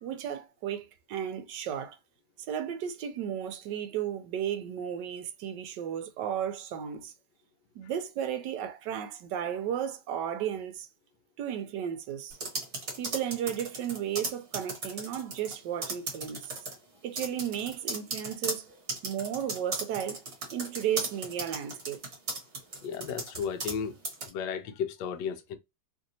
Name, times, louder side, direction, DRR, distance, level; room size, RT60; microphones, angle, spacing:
voice 1, 0.0-2.0 2.5-7.1 7.8-10.9 11.4-12.4 13.0-16.5 17.0-18.7 19.0-20.2 20.5-22.0, right 9 dB, 80° right, 1.2 m, -34 dB
sound 1, 12.3-15.5 15.8-16.7 17.1-23.8 24.0-24.3, right 2 dB, 45° right, 1.3 m, -36 dB
voice 2, 22.8-24.0 24.3-25.6, left 7 dB, 75° left, 1.2 m, -34 dB
3.2 x 2.6 x 2.6 m
omnidirectional pair, 1.9 m